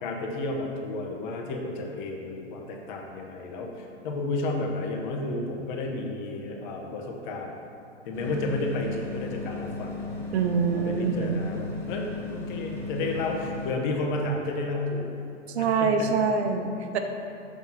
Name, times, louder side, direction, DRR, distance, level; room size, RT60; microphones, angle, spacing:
voice 1, 0.0-7.5 8.0-10.1 10.7-15.1 15.6-16.1, left 2 dB, 40° left, 1 dB, 1.0 m, -32 dB
sound 1, 8.1-13.7, left 3 dB, 5° left, 0.6 m, -36 dB
voice 2, 10.3-11.5 15.5-17.0, right 5 dB, 60° right, 5 dB, 0.7 m, -25 dB
6.1 x 3.6 x 5.6 m, 2.8 s
hypercardioid pair, 120°, 37 cm